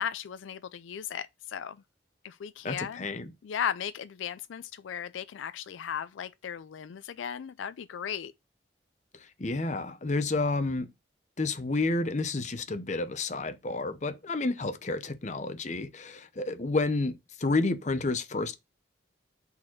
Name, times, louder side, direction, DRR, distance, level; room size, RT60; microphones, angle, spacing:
voice 1, 0.0-1.8 2.2-3.0 3.4-8.3, left 8 dB, 85° left, 0.4 m, -36 dB
voice 2, 2.6-3.3 9.4-10.9 11.4-18.5, left 3 dB, 40° left, 0.7 m, -30 dB
4.8 x 4.1 x 5.8 m
head